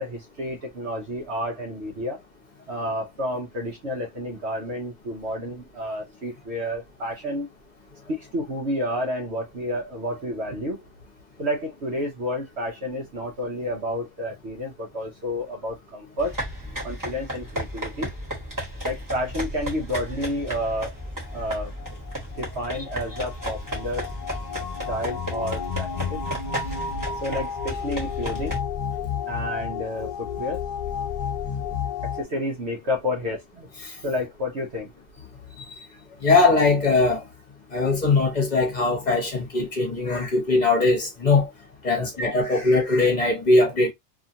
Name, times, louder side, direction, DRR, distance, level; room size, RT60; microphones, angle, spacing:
voice 1, 0.0-2.2 2.7-7.5 8.1-10.8 11.4-16.4 16.8-18.1 18.8-20.9 21.3-21.7 22.4-24.1 24.9-26.2 27.2-28.6 29.3-30.6 32.0-33.7 34.0-34.9 41.9-42.1, left 1 dB, 65° right, 1.0 m, -30 dB
sound 1, 16.2-28.6, equal, 15° right, 1.2 m, -34 dB
sound 2, 21.0-32.2, left 7 dB, 60° left, 0.4 m, -32 dB
voice 2, 36.2-37.2 37.7-41.5 41.8-43.9, left 3 dB, 35° left, 1.1 m, -20 dB
2.8 x 2.4 x 2.6 m
omnidirectional pair, 1.3 m